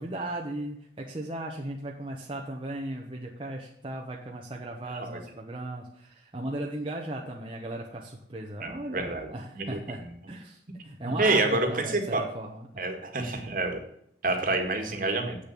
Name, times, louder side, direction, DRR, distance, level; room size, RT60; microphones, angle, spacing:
voice 1, 0.0-12.9, right 1 dB, 30° right, -1 dB, 1.1 m, -37 dB
voice 2, 4.9-5.2 8.6-9.3 9.6-9.8 11.0-12.2 12.8-13.8 14.2-15.4, right 2 dB, 50° right, 4 dB, 1.8 m, -28 dB
8.0 x 6.9 x 8.4 m, 0.71 s
head